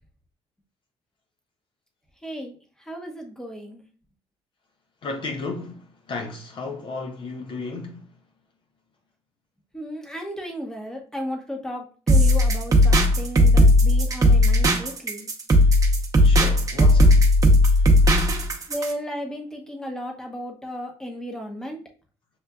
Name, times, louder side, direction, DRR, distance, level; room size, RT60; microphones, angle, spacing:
voice 1, 2.2-2.6 2.9-3.9 9.7-15.3 18.7-21.8, equal, 5° left, 0.9 m, -34 dB
voice 2, 5.0-8.1 16.2-17.4, left 3 dB, 45° left, 0.7 m, -34 dB
sound 1, 12.1-18.9, left 1 dB, 30° right, 0.9 m, -16 dB
6.7 x 2.4 x 2.3 m
cardioid pair, 105°, 11 cm